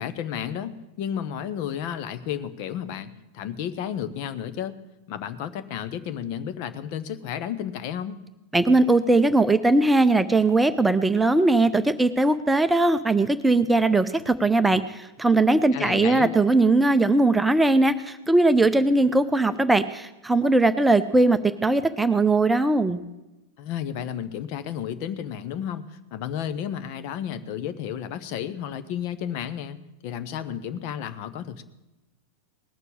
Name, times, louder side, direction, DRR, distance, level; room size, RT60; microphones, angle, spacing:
voice 1, 0.0-4.7 5.1-8.2 15.7-16.3 23.6-29.8 30.0-31.6, left 9 dB, 45° left, 11 dB, 0.9 m, -32 dB
voice 2, 8.5-23.0, right 2 dB, 5° right, 10 dB, 0.6 m, -20 dB
19.0 x 6.9 x 8.5 m, 1.0 s
figure-of-eight pair, 90°, 0 cm